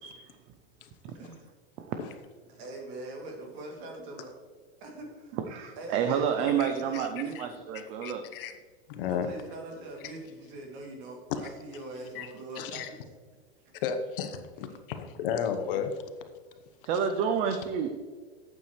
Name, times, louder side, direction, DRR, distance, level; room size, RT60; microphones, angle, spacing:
voice 1, 1.1-1.5 2.5-4.3 4.8-5.4 5.8-7.5 9.1-12.8, right 2 dB, 40° right, 0 dB, 2.5 m, -43 dB
voice 2, 5.5-8.2 16.8-17.9, right 7 dB, 20° right, 7 dB, 0.4 m, -29 dB
voice 3, 6.6-7.1 7.3-7.5 7.7-8.5 8.9-9.3 11.3-11.4 12.1-12.3 12.6-12.9 13.8-15.9, left 7 dB, 60° left, 7 dB, 1.1 m, -33 dB
11.5 x 8.6 x 3.2 m, 1.5 s
supercardioid pair, 160°, 31 cm